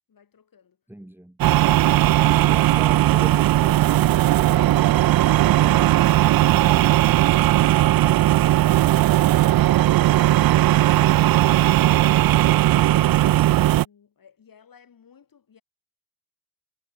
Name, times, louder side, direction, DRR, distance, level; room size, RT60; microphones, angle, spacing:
voice 1, 0.1-0.8 3.5-4.0 6.2-12.2 13.1-15.6, left 7 dB, 60° left, 7.3 m, -54 dB
voice 2, 0.9-1.4, right 1 dB, 5° right, 2.3 m, -40 dB
sound 1, 1.4-13.9, right 15 dB, 65° right, 0.5 m, -17 dB
cardioid pair, 95°, 39 cm